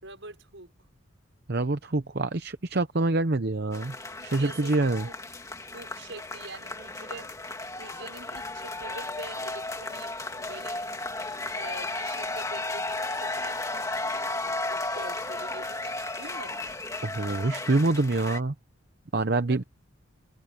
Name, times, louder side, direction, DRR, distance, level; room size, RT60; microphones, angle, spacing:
voice 1, 0.0-0.7 4.2-5.2 5.7-7.3 7.8-10.9 11.5-14.0 14.4-16.8 19.5-19.7, right 3 dB, 70° right, 5.5 m, -45 dB
voice 2, 1.5-4.0 4.2-5.1 17.0-18.5 19.1-19.6, right 2 dB, 50° right, 0.8 m, -26 dB
sound 1, 3.7-18.4, left 2 dB, 15° left, 2.3 m, -34 dB
head